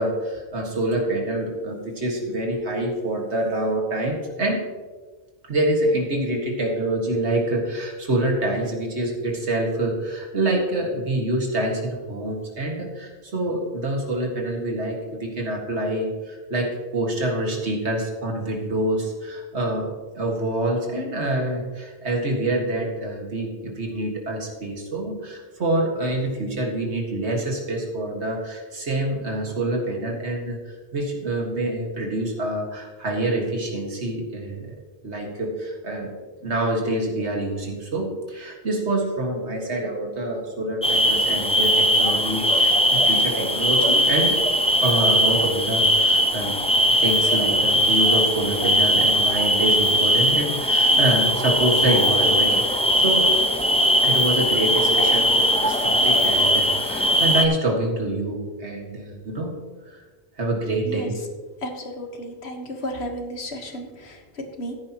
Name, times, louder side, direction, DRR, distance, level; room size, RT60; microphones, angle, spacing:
voice 1, 0.0-4.6 5.5-19.9 20.2-34.7 35.0-36.1 36.4-44.4 44.8-46.6 47.0-53.3 54.0-59.6 59.8-60.0 60.4-61.1, right 1 dB, 90° right, 0 dB, 2.2 m, -26 dB
sound 1, 40.8-57.5, equal, 5° left, 0.6 m, -19 dB
voice 2, 61.6-64.7, equal, 75° left, 3 dB, 1.7 m, -33 dB
14.5 x 10.0 x 3.0 m, 1.4 s
omnidirectional pair, 1.1 m